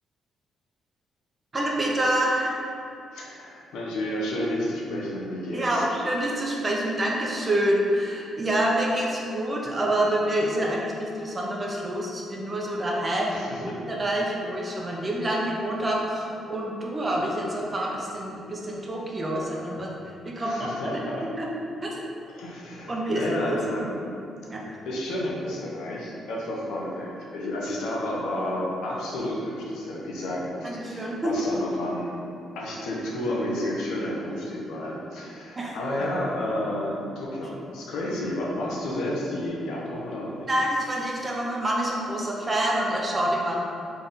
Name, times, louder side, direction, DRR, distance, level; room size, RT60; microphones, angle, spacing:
voice 1, 1.5-2.6 5.5-21.0 21.4-21.5 21.8-22.0 22.9-23.8 24.5-24.6 30.6-31.3 35.5-36.1 40.5-43.6, right 1 dB, 25° right, -3 dB, 0.8 m, -27 dB
voice 2, 3.1-5.9 13.3-13.8 20.4-21.3 22.3-24.0 24.6-32.2 32.5-40.6, left 1 dB, 85° left, -3 dB, 0.8 m, -31 dB
3.8 x 3.4 x 4.0 m, 2.6 s
cardioid pair, 90°, 0 cm